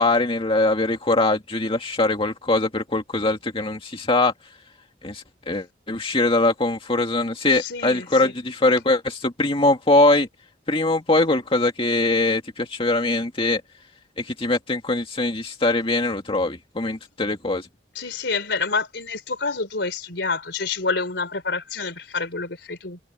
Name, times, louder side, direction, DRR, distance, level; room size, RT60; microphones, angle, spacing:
voice 1, 0.0-4.3 5.0-10.3 10.7-13.6 14.2-17.7, left 2 dB, 30° left, 2.2 m, -22 dB
voice 2, 7.5-8.3 17.9-23.0, left 4 dB, 70° left, 4.4 m, -28 dB
head